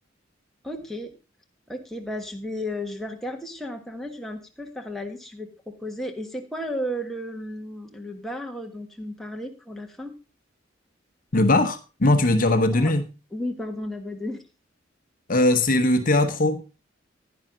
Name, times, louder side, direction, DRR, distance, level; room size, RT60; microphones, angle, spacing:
voice 1, 0.6-1.1 1.7-10.1 12.7-12.9 13.3-14.4, left 1 dB, ahead, 2 dB, 1.5 m, -34 dB
voice 2, 11.3-13.0 15.3-16.6, left 2 dB, 45° left, 8 dB, 0.9 m, -20 dB
10.5 x 10.0 x 3.8 m, 0.30 s
head